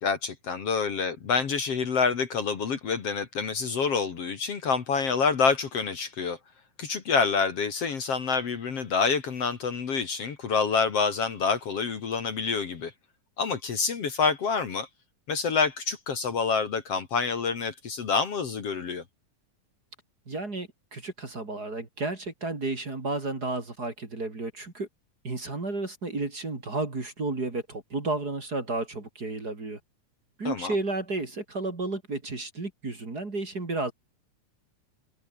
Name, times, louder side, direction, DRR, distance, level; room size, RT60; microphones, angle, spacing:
voice 1, 0.0-6.4 6.8-12.9 13.4-14.9 15.3-19.0 30.4-30.7, left 5 dB, 50° left, 3.0 m, -27 dB
voice 2, 20.3-24.9 25.2-29.8 30.4-33.9, right 2 dB, 30° right, 3.8 m, -32 dB
omnidirectional pair, 3.6 m